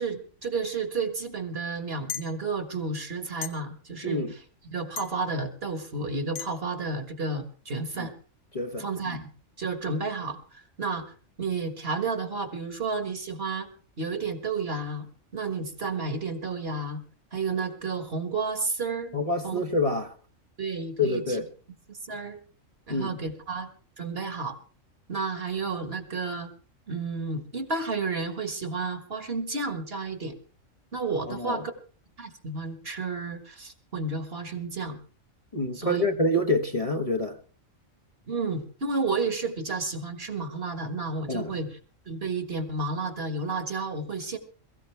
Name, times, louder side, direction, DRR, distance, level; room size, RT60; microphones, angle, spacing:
voice 1, 0.0-4.4 4.7-8.1 8.8-9.3 9.6-11.1 11.4-13.7 14.0-15.1 15.3-17.0 17.3-19.2 19.4-19.6 20.6-21.4 21.9-22.4 22.9-23.7 24.0-24.6 25.1-26.5 26.9-30.4 30.9-31.7 32.2-35.0 35.8-36.0 38.3-41.8 42.1-44.4, right 4 dB, 45° right, 1.8 m, -31 dB
sound 1, 2.1-2.3 3.4-3.5 5.0-5.1 6.4-6.5, left 8 dB, 90° left, 1.6 m, -34 dB
voice 2, 8.5-9.2 19.1-20.1 21.0-21.5 22.9-23.2 31.3-31.6 35.5-37.4 41.3-41.6, left 1 dB, 30° left, 1.2 m, -27 dB
22.5 x 14.5 x 3.3 m
omnidirectional pair, 1.4 m